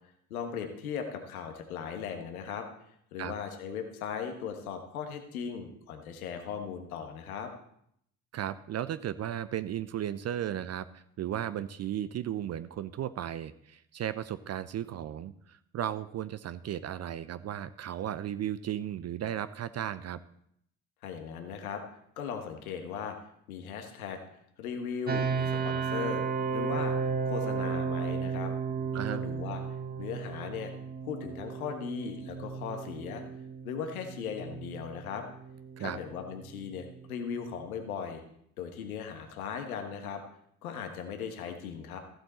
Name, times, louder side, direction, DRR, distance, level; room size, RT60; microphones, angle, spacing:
voice 1, 0.3-2.7 3.1-7.5 21.0-21.8 22.2-23.2 23.5-24.2 24.6-26.2 26.5-26.9 27.2-28.5 28.9-29.6 30.0-30.7 31.0-33.2 33.6-35.2 35.8-38.2 38.6-40.2 40.6-42.0, left 7 dB, 75° left, 5 dB, 1.4 m, -38 dB
voice 2, 8.3-20.2 28.9-29.2 35.8-36.0, right 11 dB, 35° right, 13 dB, 0.6 m, -35 dB
sound 1, 25.1-37.9, right 5 dB, 20° right, 1.0 m, -34 dB
15.0 x 7.8 x 4.3 m, 0.71 s
figure-of-eight pair, 50°, 43 cm